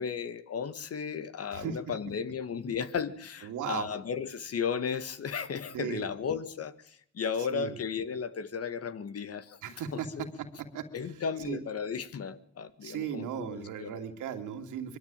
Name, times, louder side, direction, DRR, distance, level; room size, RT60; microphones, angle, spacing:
voice 1, 0.0-9.6 9.9-10.3 10.9-14.0, left 6 dB, 50° left, 13 dB, 1.8 m, -35 dB
voice 2, 3.4-3.9 5.7-6.0 7.5-7.7 9.6-10.1 10.7-10.8 11.4-11.6 12.8-15.0, right 8 dB, 80° right, 4 dB, 2.6 m, -36 dB
23.0 x 13.0 x 9.0 m, 0.68 s
cardioid pair, 90°, 30 cm